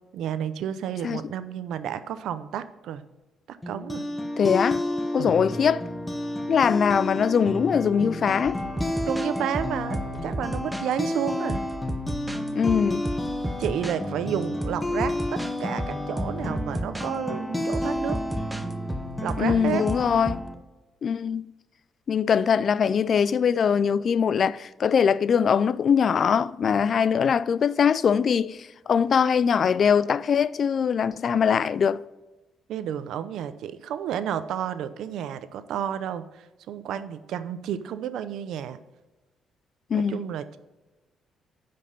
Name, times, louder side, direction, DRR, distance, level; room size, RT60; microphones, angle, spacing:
voice 1, 0.1-3.1 3.5-4.1 5.2-5.4 9.1-11.6 13.6-18.2 19.2-19.9 32.7-38.8 39.9-40.6, right 9 dB, 80° right, 0.6 m, -31 dB
sound 1, 3.6-20.5, left 1 dB, 15° left, 1.0 m, -31 dB
voice 2, 4.4-4.8 5.1-5.8 6.5-8.6 12.6-13.1 19.4-20.4 21.0-21.4 22.1-32.0 39.9-40.2, left 7 dB, 55° left, 0.3 m, -22 dB
sound 2, 8.5-10.9 11.5-14.0 14.4-17.1 17.7-20.5, right 1 dB, 10° right, 0.7 m, -33 dB
9.8 x 5.2 x 5.3 m
cardioid pair, 90°, 0 cm